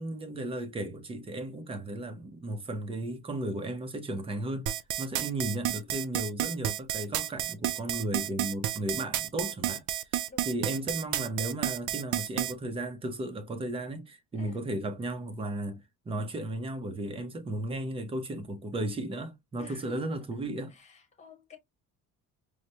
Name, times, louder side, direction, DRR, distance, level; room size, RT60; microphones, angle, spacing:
voice 1, 0.0-4.7 5.0-9.8 10.5-20.7, right 1 dB, 15° right, 0.6 m, -35 dB
sound 1, 4.7-12.5, right 13 dB, 60° right, 0.4 m, -31 dB
voice 2, 5.2-5.5 10.3-10.9 14.3-14.6 19.6-20.4 20.7-21.6, left 3 dB, 20° left, 1.1 m, -52 dB
4.7 x 2.1 x 2.7 m
cardioid pair, 165°, 34 cm